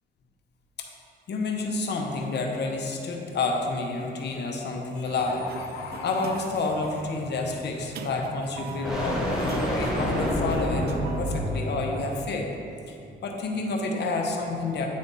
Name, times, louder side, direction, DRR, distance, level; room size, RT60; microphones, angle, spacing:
voice 1, 1.3-5.5 6.0-12.5 12.9-13.0 13.2-14.9, left 3 dB, 60° left, 1 dB, 0.9 m, -29 dB
Bird, 2.0-2.2 2.8-3.2 4.2-4.3 4.6-4.7 4.9-5.0 5.3-7.0 7.6-7.7, left 8 dB, 90° left, 0.4 m, -41 dB
Sliding door, 4.9-11.4, right 6 dB, 55° right, 0.4 m, -43 dB
sound 1, 5.0-12.0, equal, ahead, 1.5 m, -30 dB
9.3 x 3.4 x 4.1 m, 2.6 s
cardioid pair, 90°, 20 cm